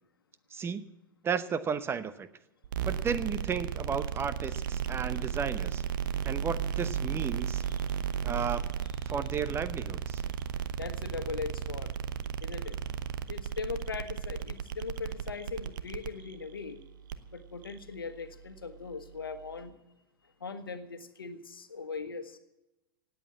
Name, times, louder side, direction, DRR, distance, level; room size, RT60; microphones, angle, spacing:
voice 1, 0.5-0.9 1.2-2.3 2.8-5.8 6.2-7.6 8.2-8.6 9.1-10.2, right 6 dB, 20° right, 13 dB, 0.9 m, -33 dB
sound 1, 2.6-19.7, right 9 dB, 60° right, 1.0 m, -35 dB
voice 2, 10.8-11.9 12.4-12.8 13.3-16.8 17.3-19.8 20.4-22.4, left 5 dB, 75° left, 9 dB, 1.4 m, -39 dB
18.0 x 8.3 x 8.5 m, 0.96 s
figure-of-eight pair, 90°, 12 cm